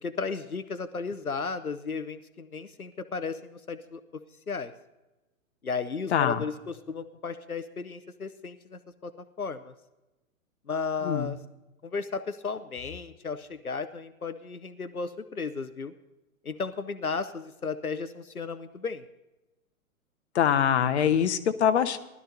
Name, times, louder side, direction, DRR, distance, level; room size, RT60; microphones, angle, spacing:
voice 1, 0.0-4.2 4.5-4.7 5.6-9.1 9.4-9.7 10.7-11.4 11.8-15.9 16.4-19.0, left 5 dB, 90° left, 10 dB, 0.8 m, -34 dB
voice 2, 6.1-6.4 11.0-11.3 20.3-22.0, left 8 dB, 50° left, 10 dB, 1.0 m, -23 dB
19.5 x 12.0 x 2.7 m, 1.0 s
figure-of-eight pair, 115°, 42 cm